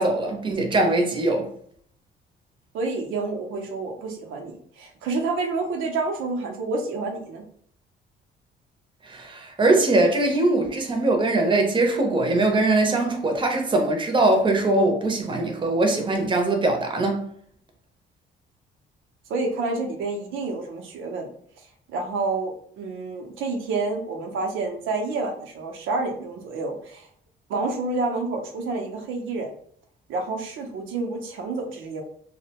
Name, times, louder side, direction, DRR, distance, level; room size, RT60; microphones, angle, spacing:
voice 1, 0.0-1.4 9.0-17.3, right 2 dB, 25° right, 3 dB, 0.6 m, -21 dB
voice 2, 2.7-7.4 19.3-21.3 21.9-27.1 27.5-29.5 30.1-32.0, right 3 dB, 80° right, 2 dB, 0.5 m, -29 dB
2.6 x 2.1 x 2.8 m, 0.62 s
cardioid pair, 90°, 20 cm